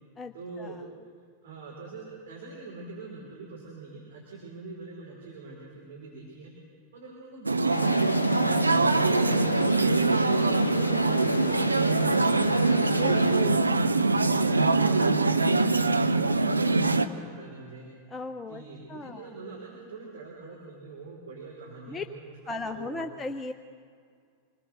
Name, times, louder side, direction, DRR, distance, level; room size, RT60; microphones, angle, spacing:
voice 1, 0.3-1.1 1.4-6.5 6.9-10.1 10.4-13.7 14.1-17.9 18.5-23.2, right 3 dB, 60° right, -3 dB, 4.6 m, -43 dB
sound 1, 7.5-17.1, right 3 dB, 80° right, 0.8 m, -23 dB
sound 2, 7.7-13.4, left 4 dB, 70° left, 0.8 m, -33 dB
voice 2, 13.0-13.9 18.1-18.6 18.9-19.3 21.9-22.0 22.5-23.5, left 3 dB, 15° left, 6 dB, 0.7 m, -36 dB
26.5 x 20.0 x 6.5 m, 2.2 s
figure-of-eight pair, 90°, 0 cm